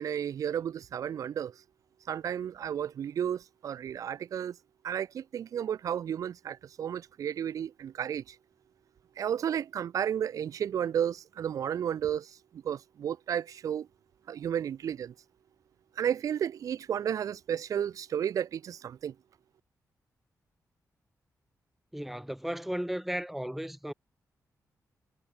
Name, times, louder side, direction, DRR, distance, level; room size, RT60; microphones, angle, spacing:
voice 1, 0.0-1.5 2.1-4.6 4.8-8.4 9.2-13.9 14.3-15.1 16.0-19.1, right 9 dB, 65° right, 0.5 m, -32 dB
voice 2, 21.9-23.9, equal, 5° right, 2.3 m, -35 dB
wide cardioid pair, 135°, 6 cm